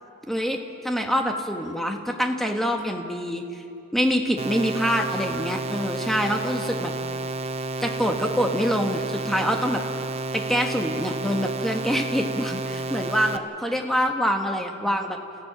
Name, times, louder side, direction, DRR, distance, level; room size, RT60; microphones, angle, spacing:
voice 1, 0.3-3.6 3.9-6.9 7.8-9.8 10.3-15.2, equal, ahead, 3 dB, 1.4 m, -25 dB
sound 1, 4.4-13.4, right 2 dB, 30° right, 0.7 m, -31 dB
29.5 x 16.0 x 6.1 m, 2.6 s
head